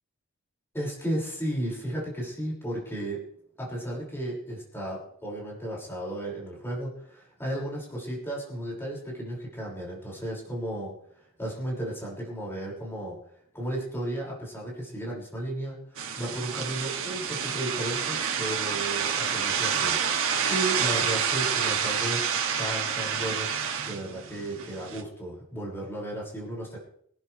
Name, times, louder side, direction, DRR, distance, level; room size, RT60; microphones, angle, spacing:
voice 1, 0.7-3.2 3.6-13.2 13.5-23.5 23.9-26.8, right 1 dB, 10° left, -5 dB, 6.1 m, -34 dB
sound 1, 16.0-25.0, right 7 dB, 65° right, 2.4 m, -28 dB
26.0 x 11.5 x 3.4 m, 0.69 s
head